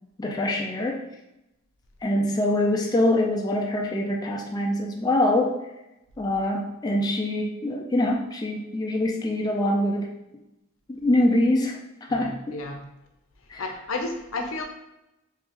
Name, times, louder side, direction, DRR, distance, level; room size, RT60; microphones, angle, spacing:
voice 1, 0.2-1.0 2.0-5.6 6.2-10.1 10.9-11.8 12.1-12.6 13.5-13.7, left 1 dB, 20° left, 1 dB, 0.3 m, -24 dB
voice 2, 12.1-12.8 13.6-14.6, left 2 dB, 90° left, 3 dB, 0.6 m, -32 dB
3.2 x 2.5 x 3.6 m, 0.91 s
head